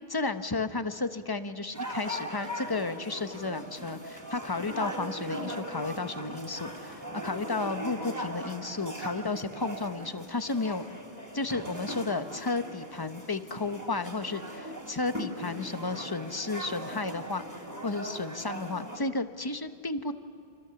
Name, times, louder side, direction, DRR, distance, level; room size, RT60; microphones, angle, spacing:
voice 1, 0.1-10.9 11.3-17.4 17.8-20.1, left 3 dB, 25° left, 10 dB, 0.9 m, -33 dB
sound 1, 1.7-19.0, equal, 15° right, 3.1 m, -39 dB
29.0 x 25.5 x 7.0 m, 2.5 s
omnidirectional pair, 1.1 m